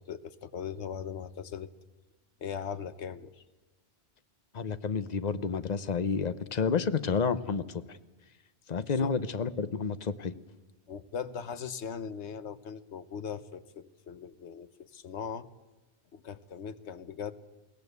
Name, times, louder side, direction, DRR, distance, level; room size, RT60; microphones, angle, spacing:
voice 1, 0.0-1.7 2.4-3.4 8.9-9.1 10.9-15.5 16.1-17.3, left 7 dB, 90° left, 14 dB, 1.2 m, -39 dB
voice 2, 4.5-8.0 8.7-10.3, left 5 dB, 40° left, 14 dB, 0.9 m, -30 dB
21.5 x 17.0 x 8.1 m, 1.2 s
omnidirectional pair, 1.1 m